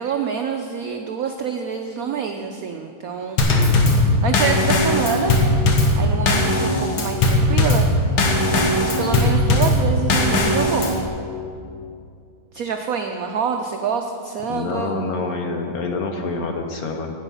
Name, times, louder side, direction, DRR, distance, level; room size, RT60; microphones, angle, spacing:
voice 1, 0.0-3.7 4.0-5.3 6.0-7.9 8.8-11.0 12.5-14.9, right 6 dB, 85° right, 4 dB, 0.7 m, -26 dB
Drum kit / Snare drum / Bass drum, 3.4-11.1, left 1 dB, 80° left, 2.0 m, -18 dB
voice 2, 14.5-17.1, left 3 dB, 60° left, 3 dB, 1.0 m, -27 dB
11.0 x 9.0 x 5.5 m, 2.4 s
omnidirectional pair, 2.2 m